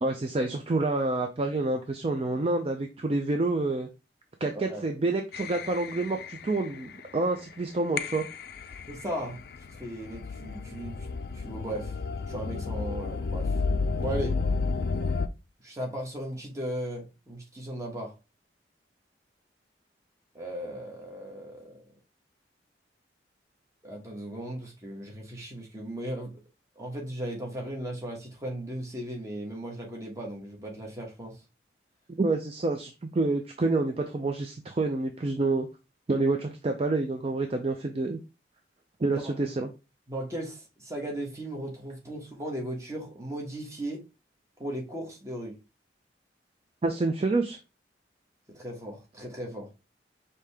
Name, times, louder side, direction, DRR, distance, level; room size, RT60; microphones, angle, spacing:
voice 1, 0.0-3.9 4.4-8.2 32.2-35.7 36.1-38.2 39.0-39.7 46.8-47.6, right 2 dB, 30° right, 0.4 m, -28 dB
sound 1, 5.3-7.2 8.0-15.3, left 4 dB, 55° left, 0.4 m, -32 dB
voice 2, 8.9-9.4 9.8-11.1 11.3-12.0 12.3-13.5 14.0-14.4 15.6-18.1 20.3-21.8 23.8-26.4 26.8-31.4 39.1-39.3 40.1-44.0 44.6-45.6 48.5-49.7, right 1 dB, 15° right, 1.1 m, -37 dB
5.0 x 2.8 x 3.4 m
head